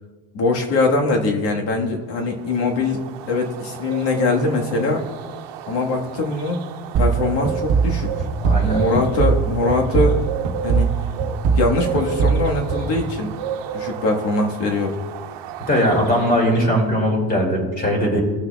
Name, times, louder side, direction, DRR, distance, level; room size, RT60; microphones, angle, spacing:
voice 1, 0.3-3.0 3.3-5.0 5.7-6.6 7.0-8.1 8.5-10.2 10.6-10.9 11.6-13.3 13.7-15.0, left 3 dB, 80° left, 1 dB, 1.6 m, -22 dB
sound 1, 2.2-16.8, right 9 dB, 85° right, 0.9 m, -33 dB
sound 2, 6.9-13.6, right 5 dB, 50° right, 0.9 m, -22 dB
voice 2, 8.4-8.8 15.6-18.2, equal, 20° left, 0 dB, 2.5 m, -19 dB
18.0 x 6.3 x 2.3 m, 1.4 s
cardioid pair, 135°, 42 cm